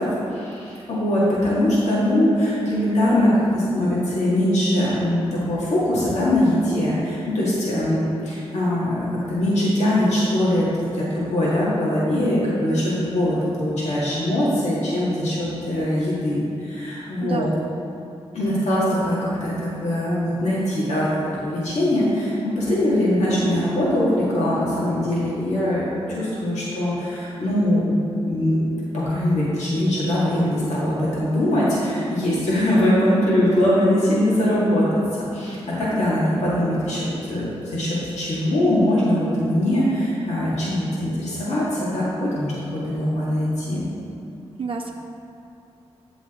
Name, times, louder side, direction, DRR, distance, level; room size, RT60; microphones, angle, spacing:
voice 1, 0.0-17.5 18.3-28.0 28.3-28.6 28.9-35.0 35.3-43.9, left 1 dB, 90° left, -8 dB, 2.0 m, -22 dB
voice 2, 17.2-17.6 44.6-44.9, right 4 dB, 55° right, 1 dB, 0.6 m, -29 dB
8.2 x 7.1 x 3.8 m, 2.8 s
cardioid pair, 50°, 11 cm